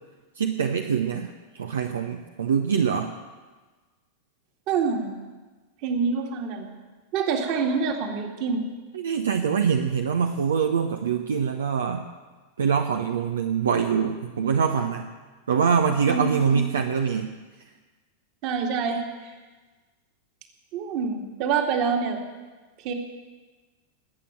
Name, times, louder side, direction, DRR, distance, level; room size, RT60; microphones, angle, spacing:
voice 1, 0.4-3.1 8.9-12.0 12.6-15.1 15.5-17.3, right 6 dB, 65° right, 6 dB, 0.9 m, -24 dB
voice 2, 4.7-5.1 5.8-6.7 7.1-8.6 16.1-16.6 18.4-19.3 20.7-22.2 22.8-22.9, right 5 dB, 45° right, 3 dB, 2.3 m, -26 dB
20.5 x 8.5 x 7.7 m, 1.3 s
figure-of-eight pair, 90°, 0 cm